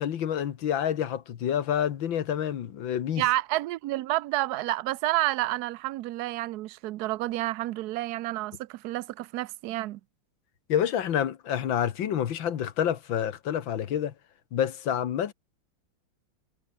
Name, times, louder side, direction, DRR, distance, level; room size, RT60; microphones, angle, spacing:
voice 1, 0.0-3.2 10.7-14.1 14.5-15.3, left 9 dB, 75° left, 2.0 m, -28 dB
voice 2, 3.2-10.0, right 16 dB, 70° right, 0.9 m, -29 dB
omnidirectional pair, 2.2 m